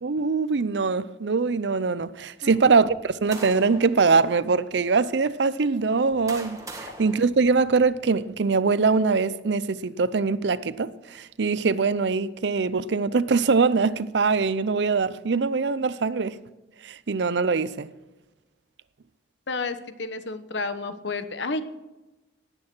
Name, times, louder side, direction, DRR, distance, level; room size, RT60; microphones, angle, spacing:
voice 1, 0.0-16.4 16.8-17.9, right 4 dB, 65° right, 0.5 m, -23 dB
sound 1, 2.8-4.0 4.7-4.9 5.8-8.1, right 2 dB, 15° right, 1.7 m, -42 dB
voice 2, 19.5-21.6, left 3 dB, 70° left, 1.1 m, -31 dB
18.0 x 9.0 x 6.1 m
head